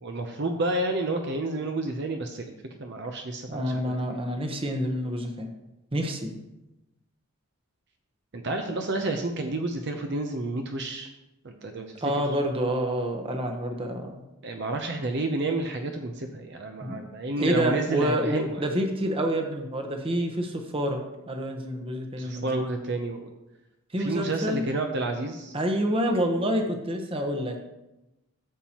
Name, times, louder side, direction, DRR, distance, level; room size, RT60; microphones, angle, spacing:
voice 1, 0.0-2.5 2.8-4.2 8.3-11.1 11.4-11.9 14.4-18.6 22.2-23.3 24.0-25.5, right 2 dB, 50° right, 4 dB, 0.7 m, -30 dB
voice 2, 3.5-5.5 5.9-6.3 12.0-14.2 16.8-17.0 17.4-22.6 23.9-24.6 25.5-27.6, equal, 25° right, 3 dB, 1.0 m, -28 dB
13.0 x 7.2 x 3.0 m, 0.97 s
head